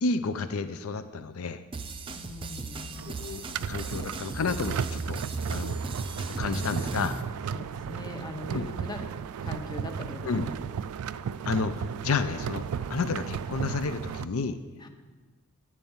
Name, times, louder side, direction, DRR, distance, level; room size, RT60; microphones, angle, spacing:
voice 1, 0.0-1.6 3.1-5.2 5.5-5.8 6.4-7.2 8.5-8.6 10.2-10.4 11.5-11.7 12.0-12.6 12.9-14.6, left 4 dB, 75° left, 11 dB, 0.5 m, -30 dB
sound 1, 1.7-7.2, right 3 dB, 25° right, 0.5 m, -36 dB
voice 2, 2.2-3.1 7.5-9.1 9.4-10.5 14.8-14.9, left 2 dB, 20° left, 5 dB, 0.8 m, -40 dB
sound 2, 3.0-14.3, right 7 dB, 80° right, 0.3 m, -35 dB
11.0 x 4.5 x 7.2 m, 1.3 s
head